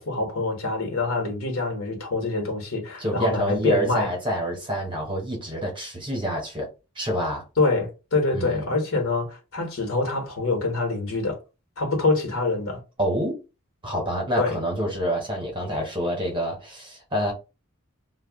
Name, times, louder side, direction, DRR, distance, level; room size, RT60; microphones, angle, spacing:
voice 1, 0.0-4.1 7.6-11.4 11.8-12.8 14.4-14.6, left 3 dB, 70° left, 1.1 m, -25 dB
voice 2, 3.0-6.7 6.9-7.4 8.3-8.7 13.0-13.4 13.8-17.3, equal, 20° right, 0.9 m, -27 dB
2.3 x 2.2 x 3.4 m
head